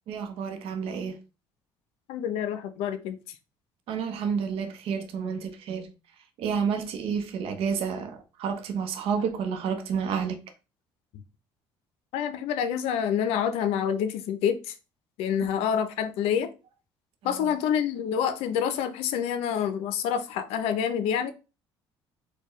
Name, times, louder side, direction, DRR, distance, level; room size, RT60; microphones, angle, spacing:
voice 1, 0.1-1.2 3.9-5.9 6.4-10.4 17.2-17.5, right 6 dB, 70° right, 0.7 m, -30 dB
voice 2, 2.1-3.2 12.1-14.7 15.2-16.5 17.2-21.3, left 8 dB, 85° left, 0.5 m, -27 dB
4.4 x 2.2 x 3.0 m
cardioid pair, 110°, 10 cm